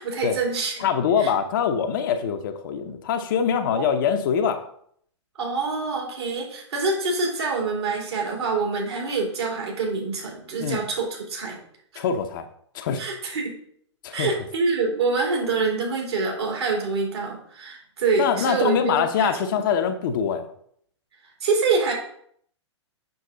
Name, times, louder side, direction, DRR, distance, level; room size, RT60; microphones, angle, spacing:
voice 1, 0.0-0.9 1.2-1.3 3.7-3.9 5.4-11.6 11.9-12.0 13.0-13.6 14.1-19.6 21.4-21.9, right 4 dB, 60° right, 0 dB, 3.0 m, -26 dB
voice 2, 0.8-4.7 10.6-10.8 12.0-12.5 12.7-13.0 14.0-14.3 18.2-20.5, left 7 dB, 45° left, 6 dB, 0.8 m, -24 dB
7.0 x 6.3 x 3.8 m, 0.65 s
figure-of-eight pair, 110°, 15 cm